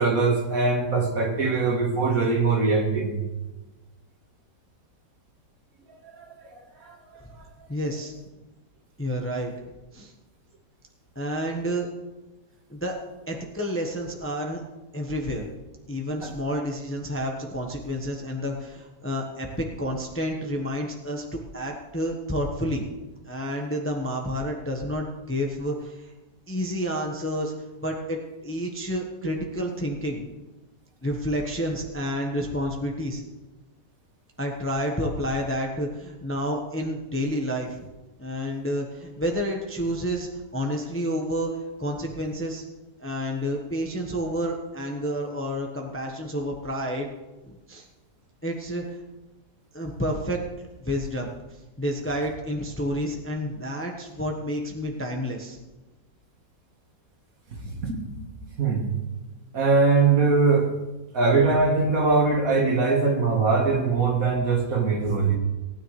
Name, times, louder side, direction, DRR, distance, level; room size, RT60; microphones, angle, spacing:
voice 1, 0.0-3.2 6.0-7.0 16.2-16.3 57.5-58.2 58.6-58.8 59.5-60.7 61.1-65.4, right 4 dB, 55° right, 2 dB, 2.0 m, -22 dB
voice 2, 7.7-8.1 9.0-9.5 9.9-10.1 11.1-11.9 12.7-12.9 13.3-14.6 14.9-15.5 15.9-22.8 23.3-26.1 26.5-27.5 27.8-30.2 31.0-33.2 34.4-37.9 38.2-42.6 43.0-47.1 47.4-47.9 48.4-49.0 49.7-50.4 50.8-51.3 51.8-55.6, equal, 10° left, 1 dB, 1.0 m, -29 dB
18.5 x 9.9 x 3.3 m, 1.1 s
omnidirectional pair, 1.8 m